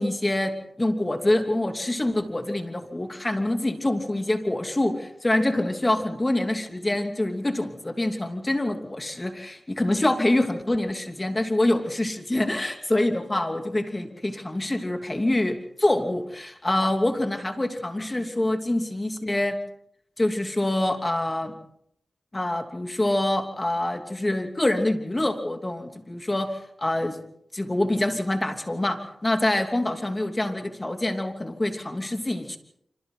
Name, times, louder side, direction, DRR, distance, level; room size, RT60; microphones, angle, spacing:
voice 1, 0.0-19.6 20.2-21.5 22.3-27.2 27.5-32.6, left 1 dB, 25° left, 5 dB, 3.0 m, -25 dB
27.0 x 26.0 x 4.0 m, 0.70 s
cardioid pair, 50°, 0 cm